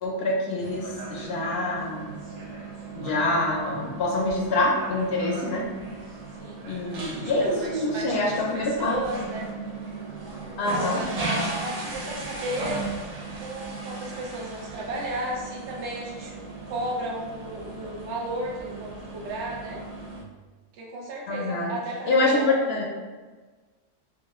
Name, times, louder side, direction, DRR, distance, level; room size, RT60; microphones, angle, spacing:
voice 1, 0.0-2.2 2.9-5.7 6.7-8.9 10.6-11.0 21.3-21.7 22.1-22.8, left 2 dB, 65° left, -2 dB, 0.8 m, -25 dB
sound 1, 0.6-20.2, right 3 dB, 85° right, 0.3 m, -36 dB
voice 2, 6.3-9.5 10.6-12.8 13.4-16.4 16.7-19.8 20.7-22.6, right 1 dB, 70° right, -2 dB, 0.9 m, -34 dB
3.1 x 2.3 x 2.9 m, 1.4 s
omnidirectional pair, 1.3 m